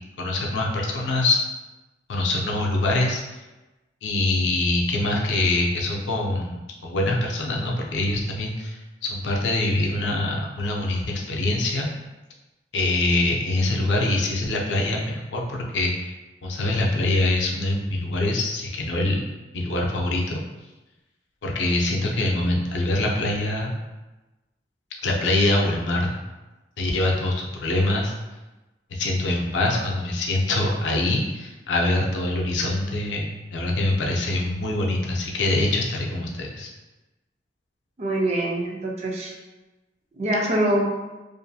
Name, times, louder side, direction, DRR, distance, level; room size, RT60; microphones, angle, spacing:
voice 1, 0.2-1.4 2.1-3.2 4.0-11.9 12.7-16.1 16.4-19.2 19.5-20.4 21.4-23.7 25.0-26.1 26.8-28.1 28.9-36.7, left 2 dB, 85° left, -1 dB, 0.5 m, -24 dB
voice 2, 38.0-39.3 40.1-40.9, right 1 dB, 35° right, -1 dB, 0.4 m, -24 dB
2.6 x 2.5 x 2.3 m, 1.1 s
head